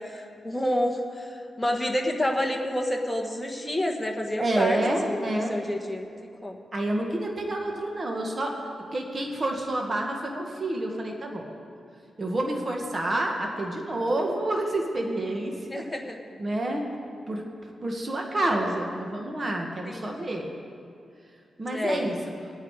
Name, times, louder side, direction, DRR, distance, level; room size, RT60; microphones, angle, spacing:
voice 1, 0.0-6.0 6.4-6.6 15.7-16.2 19.8-20.1 21.6-22.1, left 1 dB, 5° left, 1 dB, 1.4 m, -29 dB
voice 2, 4.4-5.5 6.7-8.6 8.9-11.5 12.2-15.8 16.4-16.8 17.3-20.5 21.6-22.3, right 1 dB, 35° right, 1 dB, 1.5 m, -28 dB
19.0 x 8.9 x 4.8 m, 2.4 s
wide cardioid pair, 110°, 0 cm